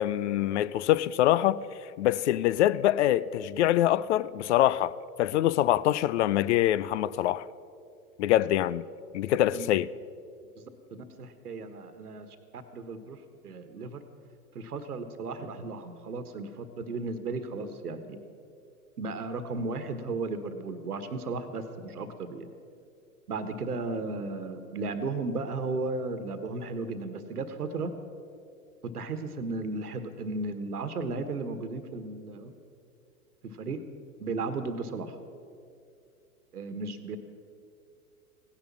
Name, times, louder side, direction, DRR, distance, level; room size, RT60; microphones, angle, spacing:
voice 1, 0.0-1.6 2.0-7.4 8.2-8.9 9.1-9.9, left 13 dB, 50° left, 0.5 m, -24 dB
voice 2, 10.9-12.3 12.5-13.2 13.4-14.0 14.5-18.2 19.0-22.5 23.3-27.9 28.8-32.5 33.4-33.8 34.2-35.1 36.5-37.2, right 3 dB, 80° right, 1.4 m, -35 dB
16.5 x 10.5 x 7.3 m
figure-of-eight pair, 100°, 45 cm